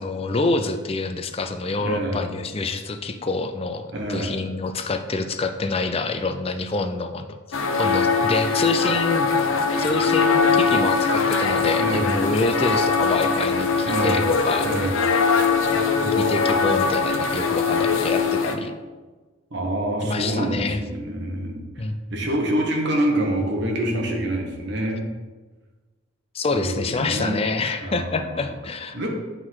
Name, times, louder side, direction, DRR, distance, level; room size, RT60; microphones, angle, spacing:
voice 1, 0.0-7.4 7.8-9.3 9.8-15.0 15.7-18.7 20.0-20.8 21.8-22.0 26.3-29.1, left 3 dB, 30° left, 8 dB, 0.4 m, -26 dB
voice 2, 1.8-2.3 3.9-4.3 11.8-12.1 13.8-14.3 14.6-14.9 19.5-21.6 22.1-25.1 26.5-27.4 27.8-28.4 28.9-29.1, right 1 dB, 55° right, 0 dB, 1.2 m, -26 dB
sound 1, 7.5-18.5, left 4 dB, 75° left, 0.7 m, -21 dB
8.4 x 3.8 x 4.8 m, 1.3 s
head